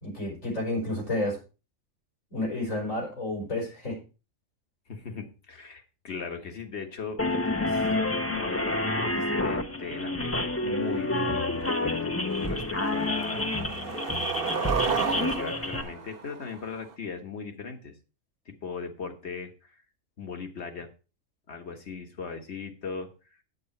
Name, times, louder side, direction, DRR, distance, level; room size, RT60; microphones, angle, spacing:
voice 1, 0.0-1.4 2.3-4.0, left 1 dB, 90° left, -1 dB, 5.1 m, -30 dB
voice 2, 4.9-7.9 8.2-12.1 12.4-13.5 15.1-17.9 18.5-19.8 20.2-20.9 21.5-23.1, left 5 dB, 55° left, 5 dB, 1.7 m, -38 dB
sound 1, 7.2-15.8, left 2 dB, 15° left, 0.7 m, -29 dB
Skateboard, 11.2-11.3 11.7-12.0 12.3-16.9, right 6 dB, 50° right, 1.0 m, -33 dB
8.7 x 8.3 x 4.3 m, 0.32 s
omnidirectional pair, 1.3 m